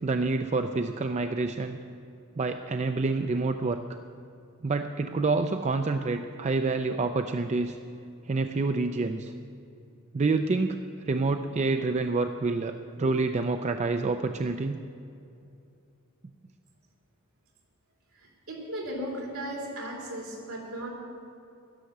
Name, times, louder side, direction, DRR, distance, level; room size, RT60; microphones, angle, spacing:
voice 1, 0.0-1.8 2.4-3.8 4.6-7.8 8.3-9.3 10.1-10.8 11.1-14.8, right 3 dB, 30° right, 7 dB, 0.4 m, -27 dB
voice 2, 18.2-20.9, right 1 dB, 75° right, -1 dB, 3.0 m, -36 dB
11.5 x 11.5 x 6.5 m, 2.6 s
head